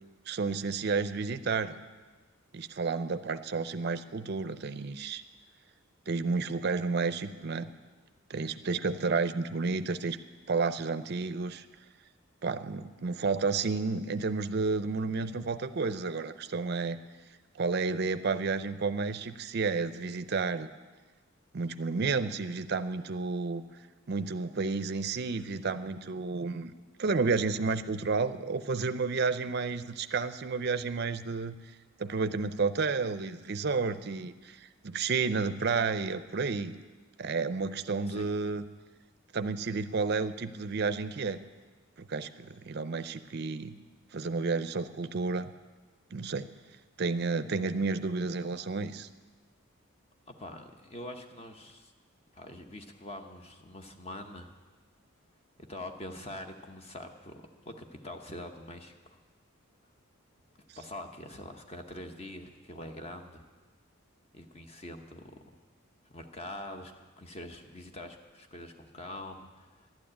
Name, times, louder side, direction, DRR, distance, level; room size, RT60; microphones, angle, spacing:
voice 1, 0.3-1.8 2.5-5.2 6.1-7.7 8.3-10.2 10.5-11.7 12.4-17.0 17.5-20.7 21.5-23.6 24.1-26.7 27.0-31.6 32.0-36.7 37.2-38.6 39.3-41.4 42.0-43.8 44.1-45.5 46.1-46.5 47.0-49.1, right 4 dB, 50° right, 12 dB, 0.5 m, -31 dB
voice 2, 50.3-51.9 52.3-54.5 55.7-59.2 60.8-63.5 64.3-65.4 66.1-69.9, left 1 dB, 30° left, 5 dB, 0.9 m, -44 dB
12.0 x 9.5 x 8.7 m, 1.3 s
head